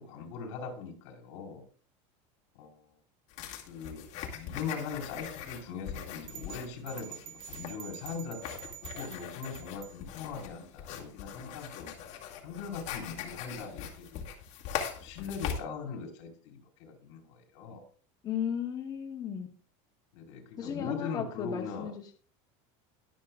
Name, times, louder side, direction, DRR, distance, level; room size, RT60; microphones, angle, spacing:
voice 1, 0.0-1.6 2.5-2.9 3.7-4.1 4.3-11.9 12.4-14.2 14.9-17.8 20.1-21.9, left 6 dB, 70° left, 1 dB, 4.8 m, -40 dB
sound 1, 3.3-15.6, left 8 dB, 45° left, 2.2 m, -41 dB
sound 2, 6.3-10.0, right 12 dB, 55° right, 1.1 m, -47 dB
voice 2, 18.2-19.5 20.6-22.1, left 8 dB, 25° left, 2 dB, 1.0 m, -35 dB
22.0 x 7.3 x 2.4 m, 0.42 s
cardioid pair, 160°, 16 cm